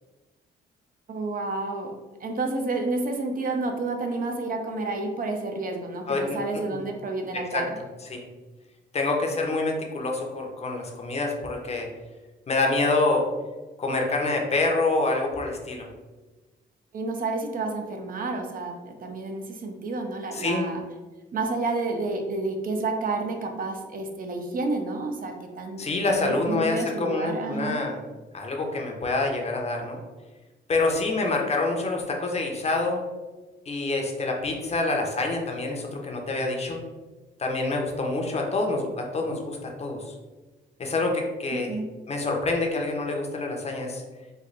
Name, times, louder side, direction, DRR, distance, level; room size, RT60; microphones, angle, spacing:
voice 1, 1.1-1.9 2.2-7.7 16.9-20.8 21.3-25.9 26.1-27.8 41.5-41.9, right 3 dB, 45° right, 3 dB, 0.6 m, -30 dB
voice 2, 6.1-6.4 6.7-6.8 7.3-7.6 8.1-8.2 8.9-11.9 12.5-13.3 13.8-15.9 20.3-20.7 25.8-28.0 28.3-30.0 30.7-33.0 33.7-36.8 37.4-40.1 40.8-41.7 42.1-44.0, left 2 dB, 30° left, 1 dB, 0.7 m, -26 dB
3.2 x 2.2 x 3.8 m, 1.2 s
cardioid pair, 90°, 20 cm